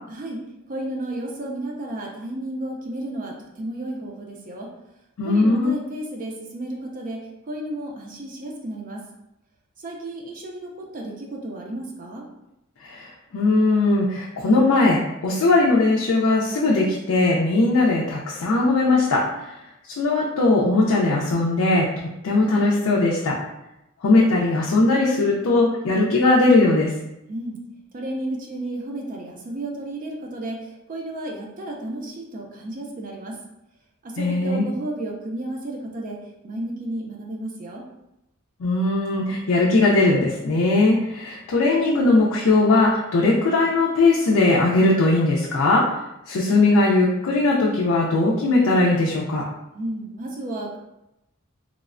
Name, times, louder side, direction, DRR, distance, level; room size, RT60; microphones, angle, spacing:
voice 1, 0.1-0.4 0.7-4.7 5.2-9.0 9.8-12.2 27.3-27.6 27.9-33.4 34.0-36.2 36.4-37.9 49.7-50.8, right 1 dB, 40° right, -1 dB, 0.4 m, -32 dB
voice 2, 5.2-5.7 12.8-13.1 13.3-19.5 19.9-21.9 22.2-23.4 24.0-26.9 34.2-34.6 38.6-45.9 46.3-49.4, left 2 dB, 75° left, -4 dB, 0.4 m, -19 dB
3.1 x 2.0 x 2.4 m, 0.89 s
head